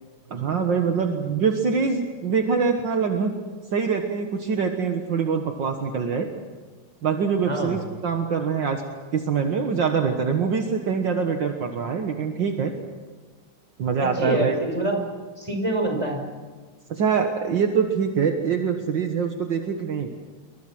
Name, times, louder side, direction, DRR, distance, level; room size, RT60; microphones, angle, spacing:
voice 1, 0.3-3.3 3.7-6.3 7.0-8.8 9.1-12.7 13.8-14.6 16.9-20.1, right 6 dB, 60° right, 4 dB, 2.1 m, -24 dB
voice 2, 7.5-7.8 14.0-15.0 15.4-16.2, right 1 dB, 15° right, 2 dB, 5.7 m, -25 dB
28.0 x 24.0 x 6.2 m, 1.4 s
omnidirectional pair, 2.3 m